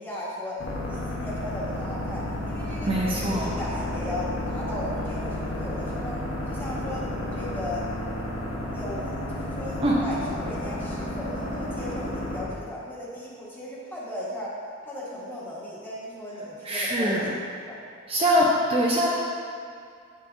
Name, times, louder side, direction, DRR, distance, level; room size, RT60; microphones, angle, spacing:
voice 1, 0.0-6.2 6.5-7.1 7.3-7.8 8.7-14.5 14.8-17.8, left 1 dB, 10° left, -8 dB, 1.6 m, -36 dB
sound 1, 0.6-12.4, left 1 dB, 75° left, 1.3 m, -32 dB
voice 2, 2.9-3.5 9.8-10.0 16.7-17.2 18.1-19.1, equal, 30° right, -5 dB, 0.7 m, -23 dB
8.8 x 6.7 x 2.7 m, 2.2 s
head